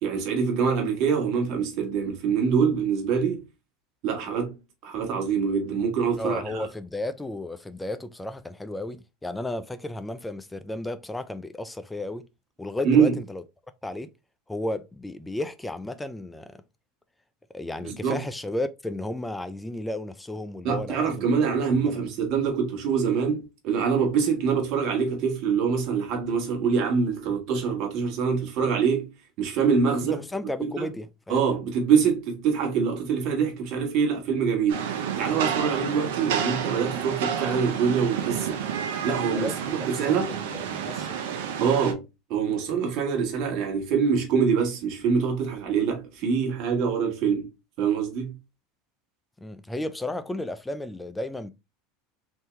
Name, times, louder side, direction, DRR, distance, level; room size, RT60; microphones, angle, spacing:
voice 1, 0.0-3.4 4.0-4.5 4.8-6.7 12.8-13.2 17.8-18.2 20.6-29.1 29.4-30.2 30.6-30.9 31.3-39.5 39.9-40.3 41.6-42.0 42.3-47.5 47.8-48.3, right 6 dB, 55° right, 1.5 m, -25 dB
voice 2, 6.2-12.3 12.6-13.4 13.8-14.1 14.5-16.6 17.5-21.5 21.8-22.0 30.0-31.5 39.3-41.2 49.4-51.5, left 1 dB, 10° left, 0.4 m, -33 dB
Rain, 34.7-41.9, right 8 dB, 75° right, 0.8 m, -30 dB
3.6 x 2.7 x 3.1 m
hypercardioid pair, 90°, 0 cm